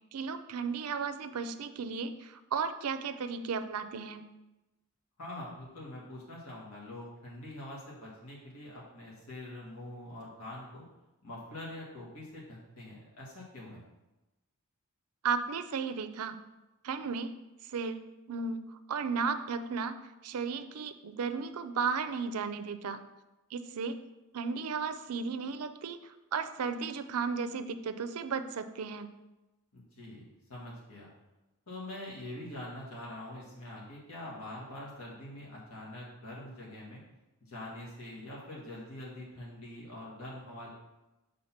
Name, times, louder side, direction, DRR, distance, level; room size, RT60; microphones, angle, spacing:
voice 1, 0.1-4.2 15.2-16.4 16.8-17.3 17.7-19.9 20.2-23.0 23.5-24.0 24.3-29.1, right 5 dB, 85° right, 10 dB, 0.5 m, -34 dB
voice 2, 5.2-10.8 11.2-13.8 29.7-31.1 31.7-37.0 37.4-40.7, left 1 dB, 75° left, -5 dB, 1.7 m, -44 dB
6.4 x 3.7 x 5.8 m, 1.0 s
head